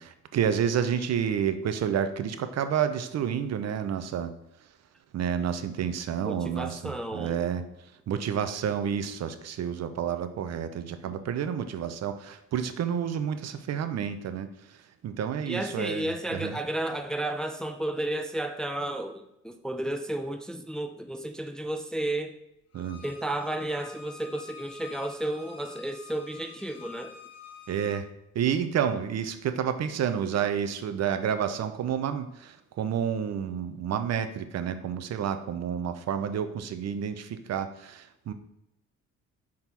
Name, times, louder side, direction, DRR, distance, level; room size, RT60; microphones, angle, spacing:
voice 1, 0.0-4.3 5.1-7.6 8.1-14.5 15.0-16.6 22.7-23.0 27.7-28.1 28.3-38.3, right 8 dB, 60° right, 10 dB, 0.6 m, -30 dB
voice 2, 6.2-7.4 15.5-22.3 23.0-27.1, right 1 dB, ahead, 6 dB, 0.4 m, -32 dB
Bowed string instrument, 22.7-28.0, left 6 dB, 55° left, 1.1 m, -47 dB
5.8 x 3.7 x 4.6 m, 0.83 s
cardioid pair, 90°, 30 cm